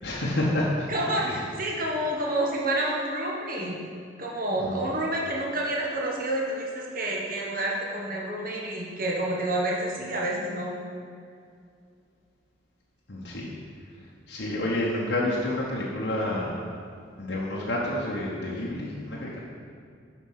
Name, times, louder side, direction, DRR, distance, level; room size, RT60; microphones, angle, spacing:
voice 1, 0.0-0.9 1.2-1.3 4.6-4.8 13.1-13.5 14.3-16.6 17.2-19.4, left 1 dB, 70° left, -5 dB, 1.1 m, -29 dB
voice 2, 0.9-3.8 4.2-10.7, right 1 dB, 50° right, -3 dB, 1.4 m, -29 dB
7.4 x 5.1 x 5.7 m, 2.3 s
head